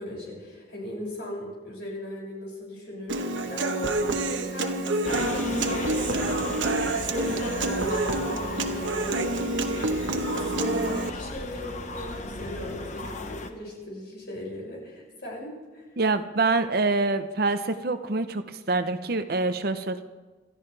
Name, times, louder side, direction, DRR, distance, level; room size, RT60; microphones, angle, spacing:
voice 1, 0.0-15.8, left 1 dB, 60° left, -3 dB, 6.4 m, -38 dB
Human voice / Acoustic guitar, 3.1-11.1, right 2 dB, 90° right, 1.1 m, -28 dB
sound 1, 5.0-13.5, left 2 dB, 40° left, 1.1 m, -35 dB
voice 2, 16.0-20.0, right 3 dB, 55° right, 10 dB, 0.8 m, -26 dB
28.0 x 13.5 x 3.4 m, 1.3 s
head